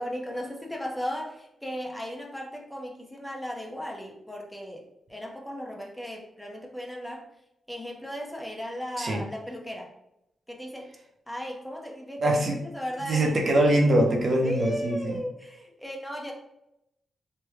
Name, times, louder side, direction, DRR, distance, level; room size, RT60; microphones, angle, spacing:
voice 1, 0.0-7.2 7.7-9.9 10.5-10.9 11.3-12.2 12.5-13.3 14.4-16.3, equal, 5° left, -1 dB, 0.8 m, -36 dB
voice 2, 12.2-12.6 13.1-15.2, right 1 dB, 55° right, 1 dB, 0.7 m, -23 dB
3.2 x 2.2 x 3.4 m, 0.82 s
cardioid pair, 65°, 0 cm